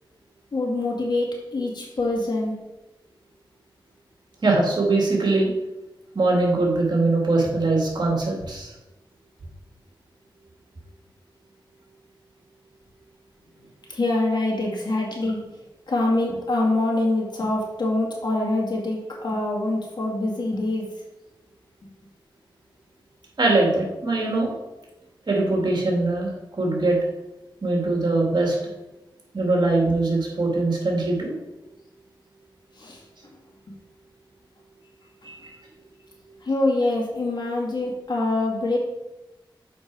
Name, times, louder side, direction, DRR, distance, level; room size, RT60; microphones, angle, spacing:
voice 1, 0.5-2.5 13.9-15.4 15.9-20.9 32.8-33.0 36.4-38.8, left 2 dB, 60° left, -2 dB, 2.2 m, -25 dB
voice 2, 4.4-5.5 6.1-8.7 23.4-24.5 25.3-27.0 27.6-28.6 29.3-31.3 35.2-35.4, right 2 dB, 60° right, -1 dB, 2.3 m, -22 dB
6.7 x 5.1 x 4.8 m, 0.99 s
wide cardioid pair, 65°, 9 cm